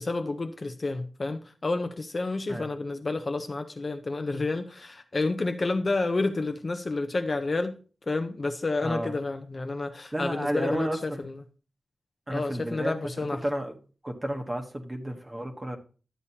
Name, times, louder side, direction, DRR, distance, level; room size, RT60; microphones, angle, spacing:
voice 1, 0.0-7.8 8.1-11.4 12.3-13.4, left 3 dB, 30° left, 0.5 m, -30 dB
voice 2, 8.8-9.2 10.1-11.2 12.3-13.7 14.0-15.8, right 1 dB, 15° right, 1.0 m, -32 dB
12.0 x 8.5 x 2.8 m
wide cardioid pair, 175°, 0 cm